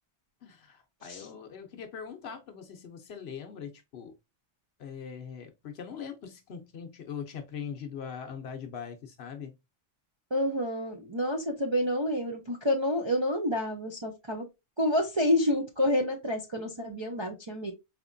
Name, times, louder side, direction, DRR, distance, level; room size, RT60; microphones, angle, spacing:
voice 1, 0.4-4.2 4.8-9.6, left 7 dB, 60° left, 0.9 m, -41 dB
voice 2, 10.3-14.4 14.8-17.7, left 1 dB, 35° right, 0.4 m, -28 dB
4.2 x 3.0 x 2.5 m
omnidirectional pair, 1.3 m